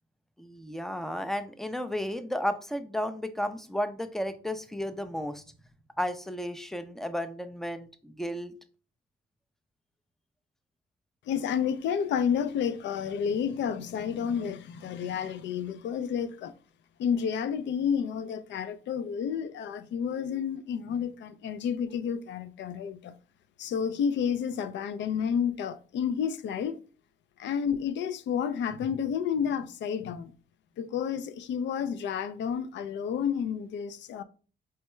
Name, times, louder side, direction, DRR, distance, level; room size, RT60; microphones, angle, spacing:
voice 1, 0.4-5.4 6.0-8.5, equal, ahead, 0.4 m, -33 dB
voice 2, 11.3-16.5 17.0-23.1 23.6-26.8 27.4-30.3 30.8-34.2, left 7 dB, 65° left, 0.4 m, -30 dB
4.5 x 2.2 x 3.0 m
cardioid pair, 90°, 20 cm